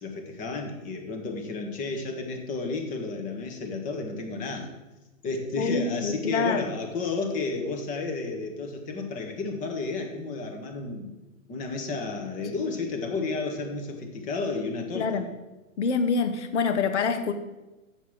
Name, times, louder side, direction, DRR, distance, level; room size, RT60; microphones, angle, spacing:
voice 1, 0.0-4.7 5.2-11.1 11.5-15.2, left 3 dB, 20° left, 4 dB, 1.2 m, -32 dB
voice 2, 5.6-6.7 14.9-15.2 15.8-17.3, left 5 dB, 55° left, 8 dB, 1.3 m, -26 dB
7.2 x 7.1 x 6.3 m, 1.1 s
hypercardioid pair, 130°, 41 cm